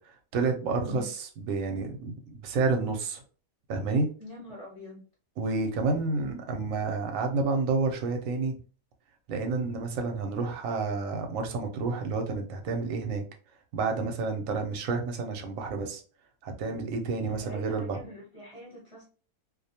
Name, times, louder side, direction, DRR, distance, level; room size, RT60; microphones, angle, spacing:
voice 1, 0.3-3.2 3.7-4.1 5.4-8.6 9.3-13.2 13.7-16.0 16.4-18.0, right 4 dB, 70° right, 4 dB, 0.9 m, -29 dB
voice 2, 4.2-5.0 17.3-19.0, left 1 dB, 30° right, -4 dB, 0.6 m, -45 dB
2.5 x 2.1 x 2.7 m, 0.38 s
omnidirectional pair, 1.6 m